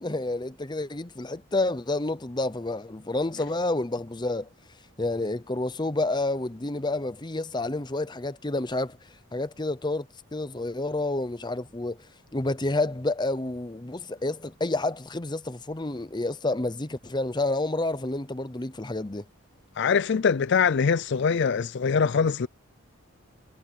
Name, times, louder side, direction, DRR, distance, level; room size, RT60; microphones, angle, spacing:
voice 1, 0.0-4.5 5.0-9.0 9.3-10.1 10.3-12.0 12.3-19.3, left 2 dB, 20° left, 0.7 m, -29 dB
voice 2, 19.8-22.5, left 6 dB, 55° left, 0.4 m, -23 dB
head